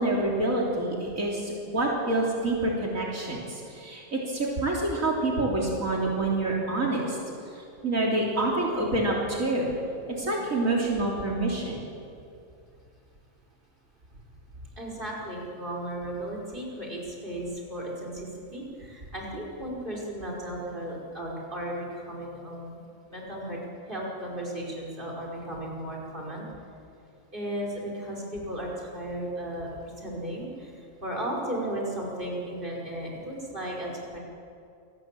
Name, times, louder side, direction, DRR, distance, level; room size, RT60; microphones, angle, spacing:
voice 1, 0.0-7.2 7.5-9.7 10.1-11.8, right 2 dB, 80° right, -3 dB, 3.7 m, -27 dB
voice 2, 14.8-22.8 23.1-23.6 23.9-26.5 27.3-29.7 30.0-30.7 31.0-34.2, right 1 dB, 40° right, -2 dB, 5.5 m, -35 dB
27.5 x 19.0 x 7.6 m, 2.5 s
omnidirectional pair, 1.4 m